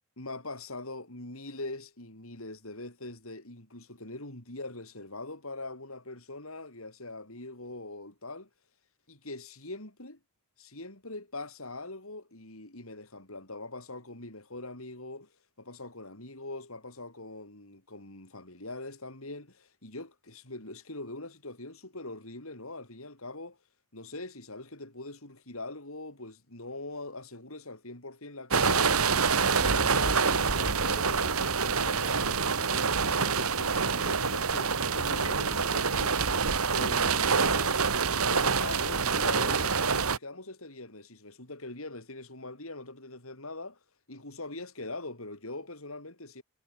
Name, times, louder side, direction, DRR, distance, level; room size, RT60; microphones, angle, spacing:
voice 1, 0.2-8.5 9.1-10.2 10.6-15.3 15.6-23.6 23.9-29.1 29.4-36.2 36.7-43.8 44.1-46.4, left 2 dB, 75° left, 7.0 m, -42 dB
sound 1, 28.5-40.2, right 5 dB, 85° right, 2.0 m, -26 dB
head